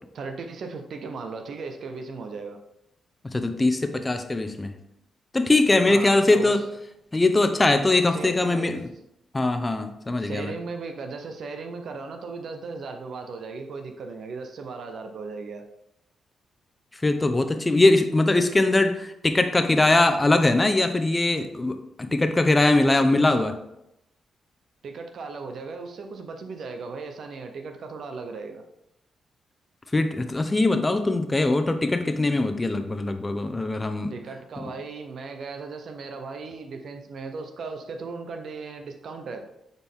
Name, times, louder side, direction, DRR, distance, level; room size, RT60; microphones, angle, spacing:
voice 1, 0.0-2.6 5.9-6.6 8.1-8.8 10.2-15.7 22.8-23.5 24.8-28.6 34.1-39.4, right 4 dB, 65° right, 6 dB, 0.8 m, -37 dB
voice 2, 3.3-4.7 5.3-6.6 7.1-8.8 9.3-10.5 17.0-23.5 29.9-34.1, left 2 dB, 25° left, 8 dB, 0.8 m, -21 dB
7.1 x 4.1 x 3.7 m, 0.83 s
supercardioid pair, 50°, 0 cm